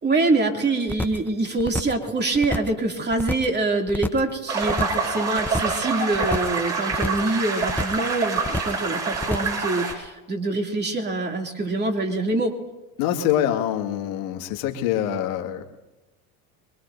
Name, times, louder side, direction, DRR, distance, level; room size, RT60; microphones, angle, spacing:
voice 1, 0.0-12.6, right 2 dB, 20° right, 2 dB, 2.7 m, -25 dB
sound 1, 0.9-1.3 1.6-2.0 2.3-2.8 3.1-3.6 3.9-4.3 4.6-5.1 5.4-5.8 6.1-6.6 6.9-7.3 7.6-8.1 8.4-8.8 9.1-9.6 9.9-10.0, left 1 dB, 5° left, 0.8 m, -29 dB
sound 2, 4.5-9.9, right 4 dB, 40° right, 6.3 m, -26 dB
voice 2, 13.0-15.6, left 11 dB, 75° left, 4 dB, 2.0 m, -25 dB
24.0 x 22.0 x 2.7 m, 1.1 s
hypercardioid pair, 85°, 45 cm